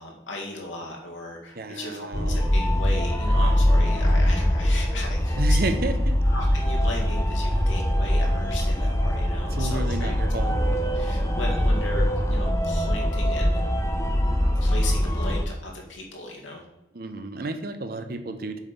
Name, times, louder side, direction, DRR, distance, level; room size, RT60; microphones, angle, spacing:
voice 1, 0.0-5.6 6.3-10.6 10.9-13.7 14.6-16.6, left 2 dB, 85° left, -1 dB, 1.9 m, -37 dB
voice 2, 1.5-2.4 5.3-6.2 9.4-10.7 16.9-18.6, right 2 dB, 50° right, 7 dB, 0.7 m, -31 dB
sound 1, 2.1-15.4, equal, 15° left, 0.7 m, -22 dB
7.2 x 4.1 x 5.1 m, 0.94 s
head